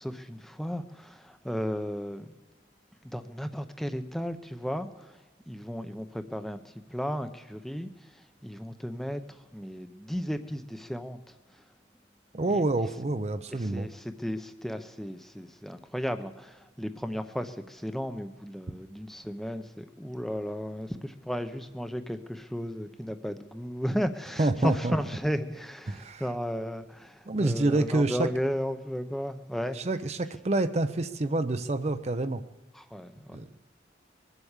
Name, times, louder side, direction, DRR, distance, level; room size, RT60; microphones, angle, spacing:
voice 1, 0.0-2.4 3.0-11.6 12.5-12.6 13.5-29.8 32.7-33.6, equal, ahead, 9 dB, 0.7 m, -34 dB
voice 2, 12.3-13.9 24.4-25.0 25.9-26.2 27.3-28.3 29.7-32.4 33.3-33.5, right 2 dB, 35° right, 10 dB, 0.5 m, -27 dB
22.0 x 8.0 x 7.3 m, 1.2 s
head